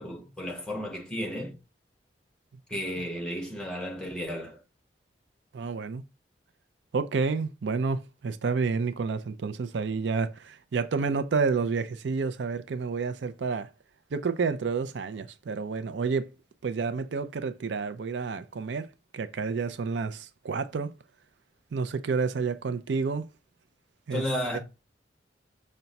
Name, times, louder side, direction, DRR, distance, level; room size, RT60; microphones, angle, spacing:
voice 1, 0.0-1.6 2.7-4.6 24.1-24.6, equal, 5° left, 1.2 m, -33 dB
voice 2, 5.5-6.0 6.9-13.7 14.1-16.3 16.6-18.9 19.1-20.9 21.7-23.2 24.1-24.2 24.5-24.6, right 4 dB, 85° right, 0.4 m, -29 dB
5.7 x 2.2 x 3.9 m
head